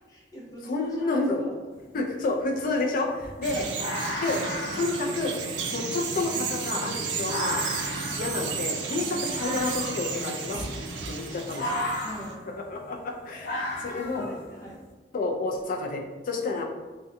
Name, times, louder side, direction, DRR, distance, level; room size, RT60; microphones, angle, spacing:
voice 1, 0.1-1.6 3.5-3.7 9.0-9.2 11.9-12.5 13.6-14.8, equal, 20° left, -6 dB, 0.7 m, -43 dB
voice 2, 0.7-1.4 1.9-3.7 4.2-4.4 4.7-5.3 5.7-7.6 8.2-10.7 11.1-11.8 12.6-14.3 15.1-16.6, left 3 dB, 50° left, 1 dB, 0.4 m, -29 dB
sound 1, 1.7-1.8 2.2-14.8, left 1 dB, 70° left, 0.7 m, -35 dB
Bird vocalization bird call bird song, 3.4-12.3, right 5 dB, 80° right, 0.4 m, -33 dB
2.6 x 2.1 x 2.5 m, 1.3 s
head